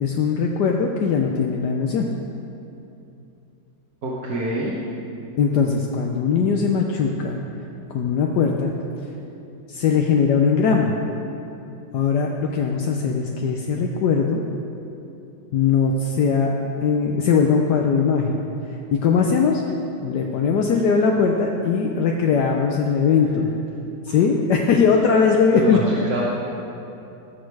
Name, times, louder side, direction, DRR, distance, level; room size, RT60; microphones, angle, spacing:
voice 1, 0.0-2.1 5.4-7.4 7.9-8.7 9.7-10.9 11.9-14.4 15.5-16.5 16.8-18.5 18.9-19.6 20.0-23.5 24.0-26.2, left 5 dB, 75° left, 1 dB, 1.3 m, -20 dB
voice 2, 4.0-4.8 24.1-24.2 25.5-26.2, right 1 dB, 60° right, -5 dB, 1.8 m, -26 dB
19.5 x 6.5 x 4.7 m, 2.8 s
omnidirectional pair, 1.9 m